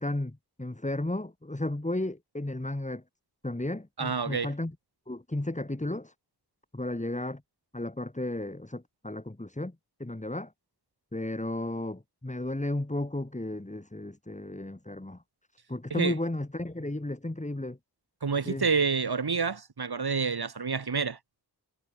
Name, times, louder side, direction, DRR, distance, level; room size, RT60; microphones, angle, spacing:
voice 1, 0.0-3.0 3.4-4.7 5.1-6.1 6.7-7.4 7.7-9.7 10.0-10.5 11.1-15.2 15.7-17.8 18.5-18.6, left 1 dB, 20° left, 2.3 m, -33 dB
voice 2, 4.0-4.5 15.9-16.2 18.2-21.2, right 5 dB, 70° right, 1.6 m, -28 dB
wide cardioid pair, 65°, 40 cm